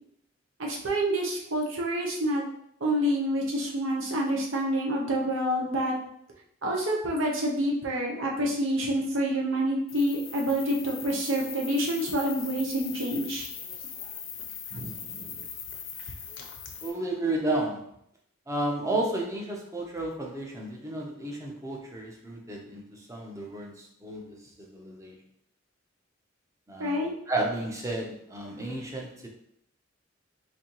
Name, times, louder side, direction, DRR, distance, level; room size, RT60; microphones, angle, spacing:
voice 1, 0.6-2.4 2.8-6.0 6.6-13.5 14.7-15.4 26.8-27.1, equal, 80° right, -1 dB, 0.9 m, -28 dB
sound 1, 9.9-16.9, left 7 dB, 75° left, 0.6 m, -40 dB
voice 2, 16.8-17.8 18.5-25.2 26.7-29.3, right 2 dB, 15° right, -1 dB, 0.6 m, -32 dB
4.1 x 2.7 x 2.9 m, 0.72 s
head